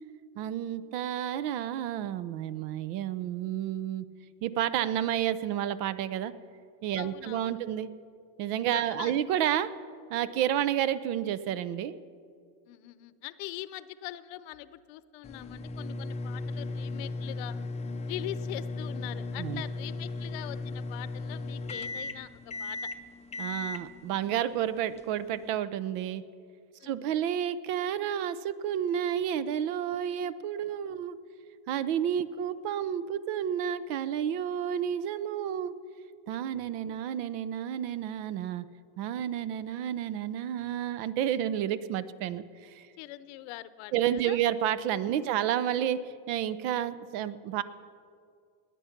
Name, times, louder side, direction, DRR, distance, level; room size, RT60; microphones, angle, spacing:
voice 1, 0.4-4.1 4.4-6.3 6.8-7.9 8.4-9.7 10.1-11.9 19.4-19.6 23.4-26.2 26.8-31.2 31.7-35.7 36.3-38.6 39.0-42.9 43.9-46.0 46.3-47.6, right 10 dB, 75° right, 15 dB, 0.8 m, -30 dB
voice 2, 7.0-7.6 8.7-9.1 12.7-17.5 18.1-22.8 26.8-27.0 30.9-31.0 32.2-32.4 39.2-39.4 43.0-44.4 45.1-45.3, left 15 dB, 65° left, 15 dB, 0.8 m, -42 dB
sound 1, 15.2-25.6, left 2 dB, 15° left, 0.5 m, -37 dB
20.0 x 8.5 x 5.9 m, 2.3 s
supercardioid pair, 120°, 48 cm